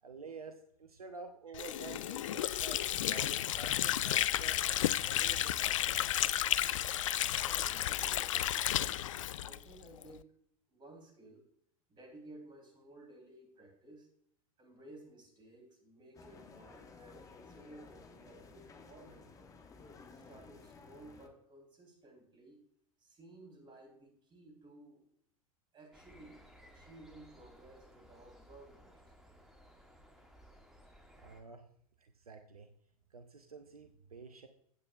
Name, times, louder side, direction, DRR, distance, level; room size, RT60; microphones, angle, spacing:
voice 1, 0.0-4.6 5.0-6.3 31.2-31.7 32.0-32.7 33.1-34.5, right 4 dB, 75° right, 7 dB, 0.8 m, -50 dB
Water / Sink (filling or washing), 1.5-10.1, left 12 dB, 60° left, 0.4 m, -32 dB
voice 2, 7.4-8.8 9.4-10.3 10.7-11.5 11.9-14.1 14.6-19.5 20.2-22.6 23.0-25.1 25.7-29.1, right 2 dB, 25° right, 2 dB, 3.5 m, -56 dB
sound 1, 16.1-21.3, left 4 dB, 20° left, 1.2 m, -55 dB
sound 2, 25.9-31.4, equal, ahead, 1.8 m, -59 dB
15.0 x 8.7 x 2.3 m, 0.67 s
figure-of-eight pair, 90°, 19 cm